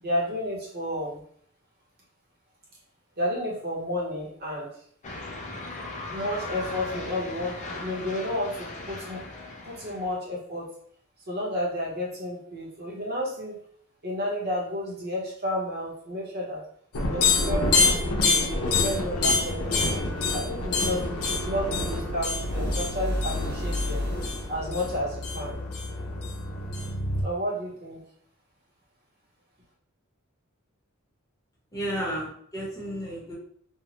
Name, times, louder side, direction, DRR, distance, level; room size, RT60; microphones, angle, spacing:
voice 1, 0.0-1.2 3.2-4.7 6.1-9.2 9.6-10.7 11.3-13.6 14.0-16.6 17.1-20.0 20.3-24.0 24.5-25.6 27.2-28.0, left 1 dB, 50° right, -4 dB, 1.0 m, -31 dB
sound 1, 5.0-10.2, left 2 dB, 35° left, 0.4 m, -38 dB
sound 2, 16.9-27.2, left 3 dB, 75° left, 0.6 m, -27 dB
sound 3, 22.3-24.7, left 1 dB, 80° right, 0.7 m, -31 dB
voice 2, 31.7-33.3, equal, 15° left, -5 dB, 0.9 m, -32 dB
2.7 x 2.2 x 2.9 m, 0.63 s
head